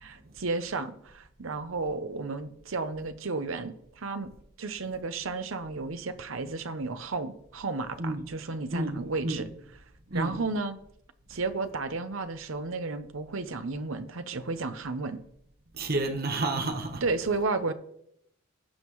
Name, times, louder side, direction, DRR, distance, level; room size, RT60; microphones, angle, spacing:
voice 1, 0.0-4.3 4.6-9.4 10.1-10.8 11.3-15.2 17.0-17.7, right 3 dB, 75° right, 0.8 m, -33 dB
voice 2, 8.7-9.5 10.1-10.4 15.8-17.0, right 2 dB, 45° right, 1.1 m, -30 dB
16.5 x 5.5 x 3.1 m
head